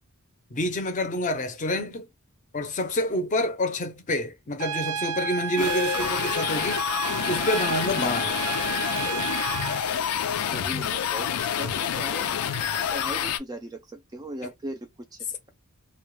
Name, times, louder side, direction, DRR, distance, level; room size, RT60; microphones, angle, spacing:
voice 1, 0.5-2.1 2.5-6.8 7.3-8.3, left 1 dB, 35° left, 0.5 m, -28 dB
Trumpet, 4.6-9.8, right 7 dB, 90° right, 0.4 m, -31 dB
sound 1, 5.6-13.4, left 9 dB, 85° left, 0.4 m, -28 dB
voice 2, 10.4-11.3 11.5-15.5, right 1 dB, 15° right, 0.3 m, -39 dB
2.2 x 2.1 x 3.0 m
head